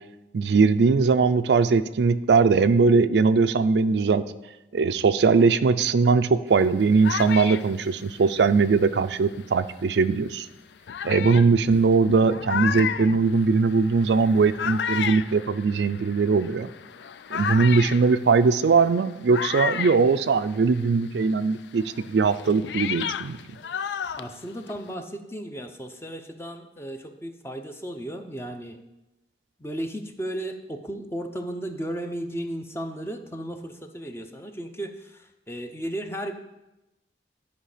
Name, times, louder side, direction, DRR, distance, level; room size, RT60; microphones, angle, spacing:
voice 1, 0.3-4.2 4.7-10.5 11.0-16.7 17.3-23.4, right 4 dB, 75° right, 12 dB, 0.4 m, -20 dB
sound 1, 6.6-9.6 10.3-10.4 10.9-20.9 21.2-24.9, left 7 dB, 75° left, 0.4 m, -33 dB
voice 2, 24.2-28.8 29.6-36.3, right 1 dB, 15° left, 6 dB, 0.6 m, -35 dB
11.5 x 5.2 x 5.0 m, 0.98 s
head